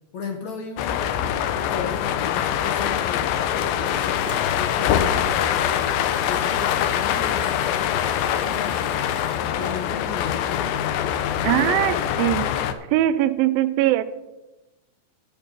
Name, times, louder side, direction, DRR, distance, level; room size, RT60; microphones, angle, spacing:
voice 1, 0.1-1.1 1.5-6.0 6.3-10.8 11.3-12.1, left 5 dB, 65° left, 4 dB, 2.0 m, -36 dB
sound 1, 0.8-12.7, left 10 dB, 80° left, 2.5 m, -24 dB
sound 2, 4.2-12.0, right 3 dB, 50° right, 0.7 m, -44 dB
voice 2, 11.4-12.5 12.9-14.0, right 13 dB, 85° right, 12 dB, 2.3 m, -21 dB
11.0 x 8.6 x 6.0 m, 1.0 s
omnidirectional pair, 4.2 m